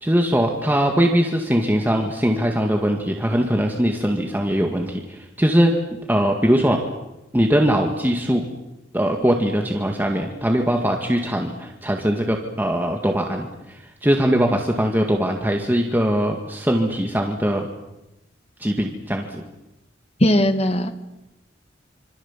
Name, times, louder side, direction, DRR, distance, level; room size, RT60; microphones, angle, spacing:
voice 1, 0.0-5.7 6.1-6.8 7.3-8.4 8.9-17.6 18.6-19.4, equal, 10° right, 2 dB, 2.0 m, -21 dB
voice 2, 20.2-21.0, left 1 dB, 35° left, 8 dB, 1.9 m, -18 dB
26.5 x 25.5 x 7.4 m, 0.94 s
head